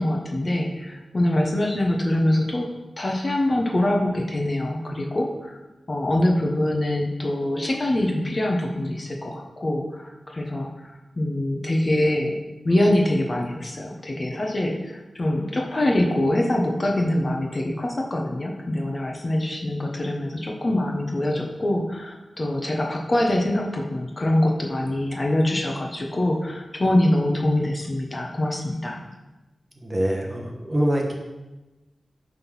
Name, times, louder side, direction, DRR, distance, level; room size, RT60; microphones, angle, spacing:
voice 1, 0.0-2.7 3.0-5.6 5.9-12.4 12.6-29.0, left 1 dB, 30° left, 1 dB, 1.1 m, -24 dB
voice 2, 29.8-31.1, equal, 20° right, 0 dB, 1.2 m, -24 dB
9.5 x 3.8 x 6.2 m, 1.1 s
wide cardioid pair, 130°, 0 cm